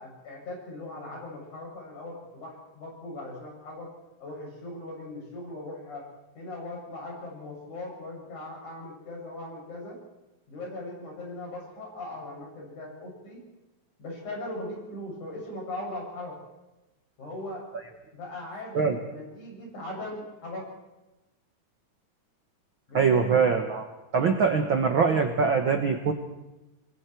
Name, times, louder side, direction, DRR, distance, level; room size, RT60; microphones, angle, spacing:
voice 1, 0.0-3.9 4.2-6.1 6.4-10.0 10.5-13.4 14.0-16.4 17.2-17.7 18.1-20.7 22.9-23.4, left 1 dB, 60° left, -2 dB, 8.7 m, -39 dB
voice 2, 22.9-23.9 24.1-26.1, right 5 dB, 55° right, 5 dB, 1.4 m, -23 dB
29.5 x 21.0 x 4.6 m, 1.0 s
omnidirectional pair, 3.9 m